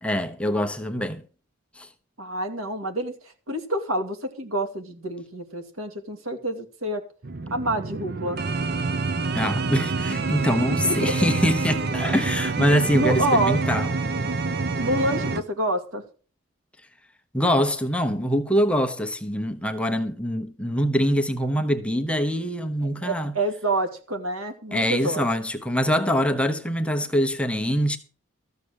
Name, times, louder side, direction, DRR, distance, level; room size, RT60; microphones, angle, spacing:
voice 1, 0.0-1.2 1.8-1.9 9.3-13.9 17.3-23.3 24.7-28.0, equal, 5° left, 0.9 m, -24 dB
voice 2, 2.2-3.1 3.5-7.0 7.5-8.4 10.8-11.1 12.9-13.6 14.8-16.0 22.8-25.2, right 1 dB, 90° right, 2.4 m, -27 dB
sound 1, 7.2-15.4, right 3 dB, 50° right, 0.7 m, -27 dB
14.0 x 6.9 x 6.5 m
head